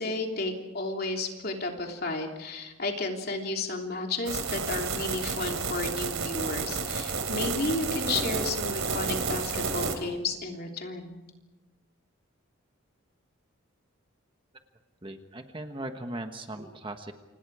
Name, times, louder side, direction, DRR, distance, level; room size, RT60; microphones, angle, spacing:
voice 1, 0.0-11.2, left 3 dB, 45° left, 2 dB, 3.3 m, -32 dB
sound 1, 4.3-10.0, right 4 dB, 70° right, 3.3 m, -31 dB
voice 2, 15.0-17.1, right 1 dB, 25° right, 6 dB, 1.3 m, -38 dB
29.5 x 26.5 x 4.9 m, 1.1 s
head